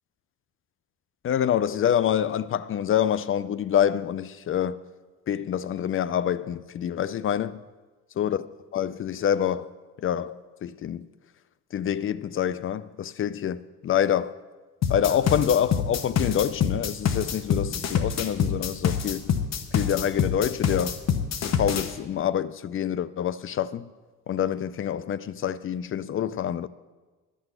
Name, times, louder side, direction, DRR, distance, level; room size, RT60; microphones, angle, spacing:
voice 1, 1.2-4.8 5.3-7.6 8.2-8.4 8.7-9.7 10.0-11.1 11.7-14.3 14.9-19.3 19.7-21.0 21.4-23.9 24.3-26.7, left 9 dB, 45° left, 0.5 m, -26 dB
sound 1, 14.8-21.9, left 7 dB, 60° left, 1.0 m, -26 dB
11.0 x 6.2 x 7.7 m
cardioid pair, 90°, 30 cm